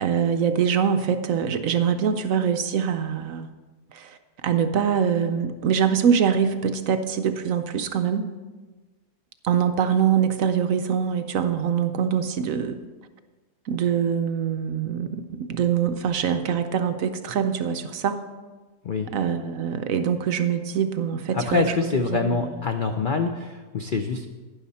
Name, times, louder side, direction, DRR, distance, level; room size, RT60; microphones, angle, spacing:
voice 1, 0.0-3.5 3.9-4.2 4.4-8.3 9.4-12.8 13.7-18.2 19.1-21.7 22.1-22.6, right 7 dB, 65° right, 9 dB, 0.9 m, -24 dB
voice 2, 21.3-24.3, left 4 dB, 70° left, 5 dB, 0.4 m, -25 dB
11.5 x 10.0 x 4.2 m, 1.3 s
omnidirectional pair, 1.7 m